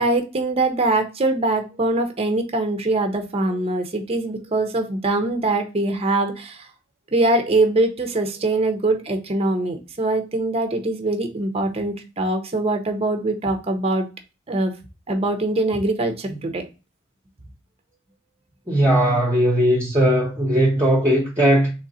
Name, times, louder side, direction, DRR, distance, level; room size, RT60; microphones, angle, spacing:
voice 1, 0.0-6.6 7.1-14.1 14.5-14.7 15.1-16.6, right 2 dB, 30° right, 0.7 m, -22 dB
voice 2, 18.7-21.7, right 1 dB, 15° right, 1.0 m, -18 dB
3.9 x 3.1 x 4.1 m
head